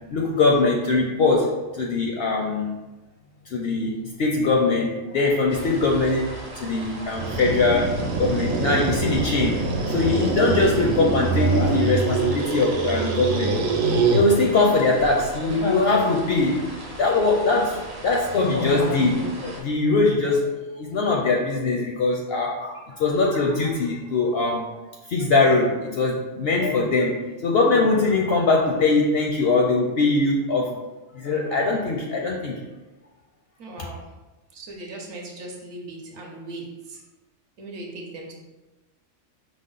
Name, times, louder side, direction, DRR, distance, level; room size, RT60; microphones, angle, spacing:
voice 1, 0.1-2.8 3.5-13.5 14.1-16.7 17.0-24.7 25.1-30.8 31.1-32.6, left 3 dB, 65° left, -2 dB, 0.6 m, -22 dB
sound 1, 5.5-19.6, right 1 dB, 45° right, 1.0 m, -39 dB
sound 2, 7.1-14.3, right 4 dB, 85° right, 1.0 m, -24 dB
voice 2, 33.6-34.1 34.5-37.0 37.6-38.3, right 2 dB, 65° right, 0 dB, 1.0 m, -38 dB
5.1 x 2.0 x 3.8 m, 1.1 s
omnidirectional pair, 1.4 m